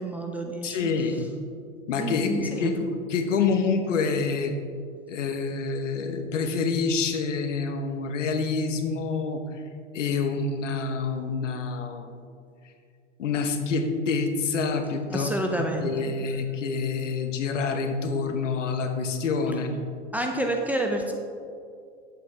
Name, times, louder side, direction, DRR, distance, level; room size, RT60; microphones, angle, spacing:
voice 1, 0.0-0.9 1.9-2.8 15.1-16.1 20.1-21.1, right 1 dB, 5° right, 2 dB, 0.4 m, -29 dB
voice 2, 0.6-1.3 1.9-2.8 3.1-4.5 5.1-9.4 9.9-12.2 13.2-15.3 15.8-19.8, left 4 dB, 80° left, 5 dB, 1.1 m, -27 dB
8.5 x 7.9 x 3.4 m, 2.3 s
hypercardioid pair, 115°, 36 cm